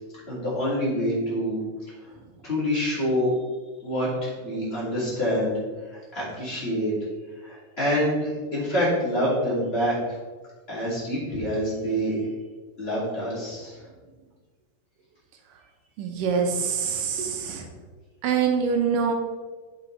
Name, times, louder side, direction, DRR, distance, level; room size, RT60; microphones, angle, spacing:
voice 1, 0.3-1.6 2.4-3.3 3.8-5.5 5.9-6.9 7.4-10.2 10.7-12.2 12.8-13.8, equal, 20° left, -8 dB, 2.4 m, -26 dB
voice 2, 16.0-17.7 18.2-19.1, right 6 dB, 80° right, 3 dB, 2.4 m, -25 dB
8.8 x 6.0 x 3.3 m, 1.4 s
omnidirectional pair, 4.0 m